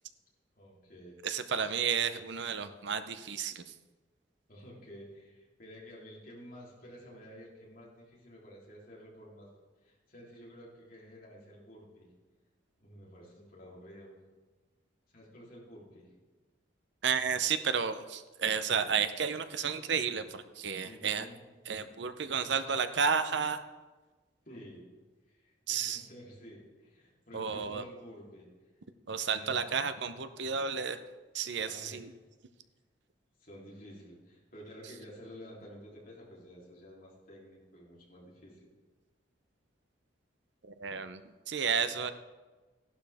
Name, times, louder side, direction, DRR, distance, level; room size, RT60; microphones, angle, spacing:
voice 1, 0.6-1.2 4.5-9.5 9.8-12.1 12.8-14.2 15.1-16.1 20.8-21.4 24.4-24.9 25.3-28.5 29.3-29.6 31.6-32.1 33.4-38.7, equal, 45° left, -4 dB, 3.4 m, -51 dB
voice 2, 1.2-3.7 17.0-21.3 21.7-23.6 25.7-26.0 27.3-27.8 29.1-31.0 31.3-32.1 40.6-41.2 41.5-42.1, right 6 dB, 65° right, 10 dB, 0.7 m, -32 dB
14.5 x 11.5 x 3.5 m, 1.3 s
head